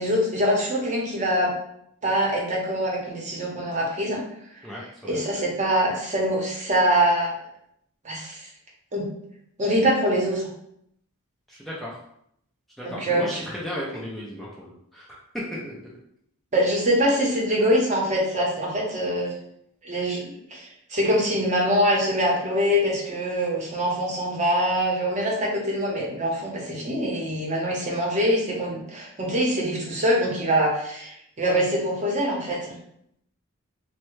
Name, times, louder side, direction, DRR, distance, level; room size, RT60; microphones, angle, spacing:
voice 1, 0.0-1.5 2.0-4.2 5.0-7.3 8.0-8.5 8.9-9.0 9.6-10.5 12.8-13.4 16.5-19.3 19.8-32.8, equal, 35° right, -2 dB, 0.8 m, -24 dB
voice 2, 4.6-5.2 11.5-12.0 12.8-15.2 15.5-15.7, equal, ahead, -6 dB, 0.4 m, -35 dB
3.3 x 2.1 x 3.1 m, 0.71 s
head